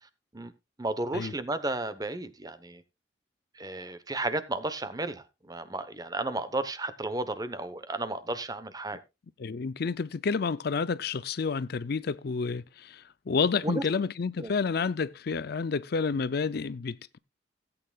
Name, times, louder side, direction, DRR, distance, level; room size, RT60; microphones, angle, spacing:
voice 1, 0.8-2.8 3.5-9.0 13.6-13.8 14.4-14.5 16.1-16.2, right 2 dB, 20° right, 1.0 m, -33 dB
voice 2, 9.4-17.2, left 5 dB, 60° left, 0.5 m, -30 dB
17.0 x 8.7 x 2.4 m
head